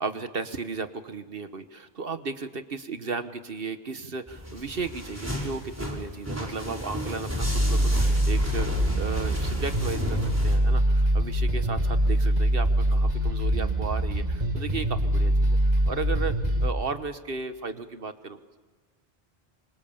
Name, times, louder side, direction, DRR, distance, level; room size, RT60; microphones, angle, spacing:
voice 1, 0.0-15.6 15.9-16.3 16.6-18.4, right 4 dB, 65° right, 9 dB, 1.4 m, -35 dB
sound 1, 4.3-10.6, equal, 15° right, 5.1 m, -34 dB
sound 2, 7.4-16.7, equal, 40° right, 2.2 m, -24 dB
27.0 x 25.0 x 7.1 m, 1.4 s
omnidirectional pair, 1.0 m